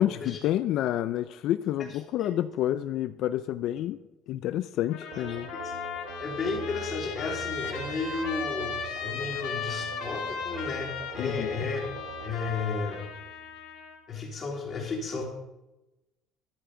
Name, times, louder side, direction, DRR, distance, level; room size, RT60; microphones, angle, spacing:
voice 1, 0.0-4.0 4.3-5.5 11.2-11.5, left 12 dB, 55° left, 12 dB, 0.4 m, -29 dB
Trumpet, 4.9-14.0, left 6 dB, 75° left, 2.4 m, -37 dB
sound 1, 5.1-13.8, right 7 dB, 85° right, 1.2 m, -44 dB
voice 2, 6.2-13.0 14.1-15.2, left 4 dB, 30° left, -1 dB, 3.1 m, -33 dB
14.0 x 10.5 x 3.8 m, 0.97 s
cardioid pair, 165°, 0 cm